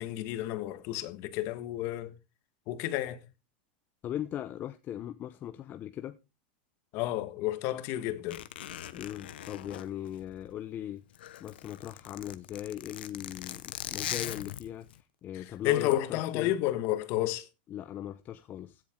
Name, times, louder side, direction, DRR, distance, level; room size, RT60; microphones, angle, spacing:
voice 1, 0.0-2.1 2.7-3.2 6.9-8.4 15.3-17.5, left 14 dB, 55° left, 1.6 m, -31 dB
voice 2, 4.0-6.2 8.9-11.0 11.4-16.6 17.7-18.8, left 11 dB, 35° left, 0.8 m, -39 dB
Zipper (clothing), 8.3-10.7 11.0-15.0 15.6-15.9, left 12 dB, 80° left, 0.9 m, -41 dB
15.5 x 7.6 x 3.7 m
hypercardioid pair, 115°, 5 cm